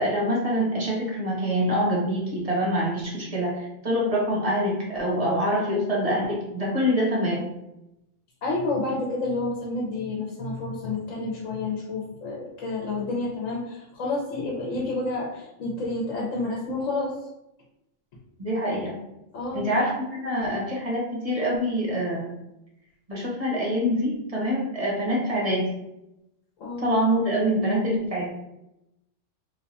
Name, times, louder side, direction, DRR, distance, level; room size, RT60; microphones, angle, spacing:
voice 1, 0.0-7.5 18.4-19.0 19.5-22.3 23.1-25.8 26.8-28.3, equal, 30° right, -4 dB, 0.8 m, -25 dB
voice 2, 8.4-17.1 19.3-19.6 26.6-26.9, left 2 dB, 75° left, -2 dB, 1.1 m, -29 dB
3.2 x 2.2 x 4.0 m, 0.89 s
omnidirectional pair, 1.3 m